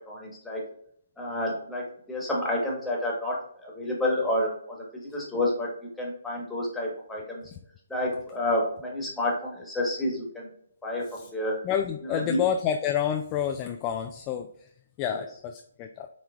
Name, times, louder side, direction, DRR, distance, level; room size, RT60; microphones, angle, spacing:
voice 1, 0.1-0.6 1.2-3.4 3.6-5.7 6.0-7.4 7.9-10.5 10.8-11.6 12.1-12.4, left 1 dB, 5° left, -4 dB, 1.4 m, -29 dB
voice 2, 11.6-14.7 15.0-16.1, left 9 dB, 25° left, 5 dB, 0.3 m, -29 dB
5.4 x 3.2 x 2.4 m, 0.65 s
hypercardioid pair, 145°, 0 cm